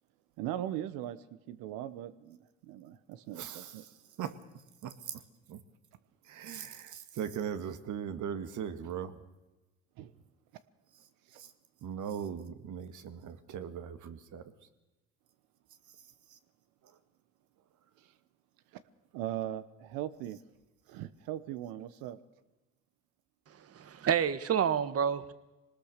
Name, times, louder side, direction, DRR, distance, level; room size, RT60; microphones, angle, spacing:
voice 1, 0.4-3.8 10.0-10.1 11.3-11.4 18.0-18.1 18.7-18.8 19.1-20.4 20.9-22.2, right 12 dB, 80° right, 14 dB, 1.2 m, -39 dB
voice 2, 3.4-3.7 4.2-4.3 4.8-4.9 5.5-5.6 6.3-9.1 11.8-14.4, right 8 dB, 60° right, 10 dB, 1.9 m, -39 dB
voice 3, 23.7-25.3, right 8 dB, 45° right, 14 dB, 1.4 m, -29 dB
23.0 x 19.5 x 6.7 m, 1.1 s
supercardioid pair, 90°, 35 cm